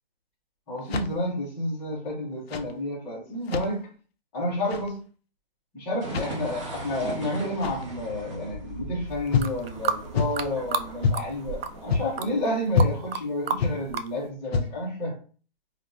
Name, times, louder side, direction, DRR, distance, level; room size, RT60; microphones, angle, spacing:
voice 1, 0.7-3.9 4.3-5.0 5.7-15.2, left 1 dB, 5° left, -8 dB, 0.5 m, -30 dB
sound 1, 0.8-1.4 2.3-2.7 3.3-3.8 4.6-4.9 6.0-6.4 7.5-7.9 9.3-9.6 10.1-10.5 11.0-11.3 11.9-12.3 12.7-13.0 13.6-13.8 14.4-14.9, left 5 dB, 85° left, 0.6 m, -27 dB
sound 2, 6.0-12.4, right 2 dB, 30° right, 0.7 m, -39 dB
sound 3, 9.3-10.9 11.1-11.9 12.2-13.2 13.5-14.1, right 6 dB, 70° right, 0.4 m, -30 dB
5.0 x 2.1 x 2.3 m, 0.41 s
hypercardioid pair, 165°, 30 cm